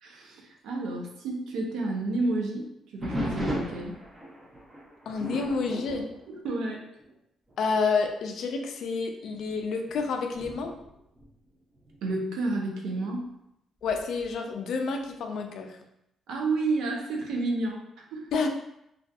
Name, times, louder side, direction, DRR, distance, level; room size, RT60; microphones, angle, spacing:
voice 1, 0.0-2.7 2.9-4.0 6.3-6.8 12.0-13.3 16.3-18.3, right 2 dB, 85° right, 0 dB, 0.5 m, -30 dB
sound 1, 3.0-7.1 7.5-7.8 8.4-8.5 9.3-12.0 13.8-14.3, equal, 25° right, 0.7 m, -37 dB
voice 2, 5.1-6.0 7.6-10.7 13.8-15.8 18.3-18.5, left 4 dB, 70° left, 4 dB, 0.3 m, -29 dB
2.5 x 2.3 x 2.2 m, 0.81 s
cardioid pair, 90°, 0 cm